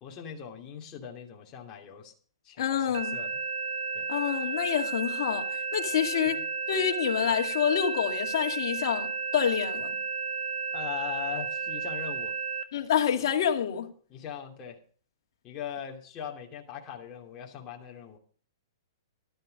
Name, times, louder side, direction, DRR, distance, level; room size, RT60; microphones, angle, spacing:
voice 1, 0.0-2.1 2.4-3.3 3.9-4.1 6.3-6.4 10.7-12.3 14.1-14.8 15.4-18.2, left 8 dB, 30° left, 2.7 m, -40 dB
voice 2, 2.6-3.2 4.1-5.4 5.7-6.4 6.7-10.0 12.7-13.9, left 9 dB, 60° left, 2.3 m, -27 dB
sound 1, 2.9-12.6, right 5 dB, 65° right, 1.7 m, -33 dB
13.0 x 12.5 x 5.2 m
hypercardioid pair, 130°, 2 cm